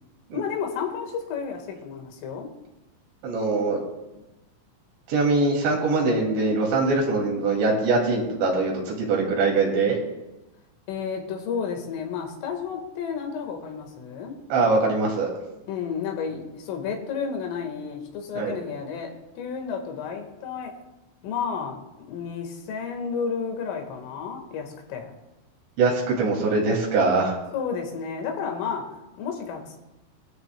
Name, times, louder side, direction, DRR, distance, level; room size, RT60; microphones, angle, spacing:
voice 1, 0.3-2.5 10.9-14.3 15.7-20.7 21.2-25.1 27.5-29.8, left 6 dB, 90° left, 2 dB, 4.4 m, -32 dB
voice 2, 3.2-3.8 5.1-10.0 14.5-15.3 18.4-18.5 25.8-27.3, right 3 dB, 65° right, -1 dB, 4.7 m, -22 dB
21.0 x 13.0 x 2.3 m, 0.99 s
omnidirectional pair, 5.6 m